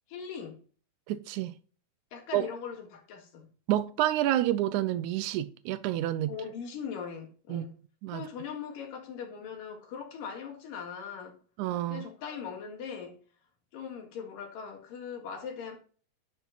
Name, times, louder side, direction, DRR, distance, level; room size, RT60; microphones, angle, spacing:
voice 1, 0.1-0.6 2.1-3.5 6.3-7.8 8.1-11.4 11.9-13.2 13.7-15.8, left 6 dB, 70° left, 3.4 m, -40 dB
voice 2, 1.1-1.5 2.3-2.4 3.7-6.3 7.5-7.7 8.0-8.2 11.6-12.0, right 13 dB, 85° right, 1.7 m, -29 dB
10.5 x 5.9 x 4.0 m
omnidirectional pair, 4.2 m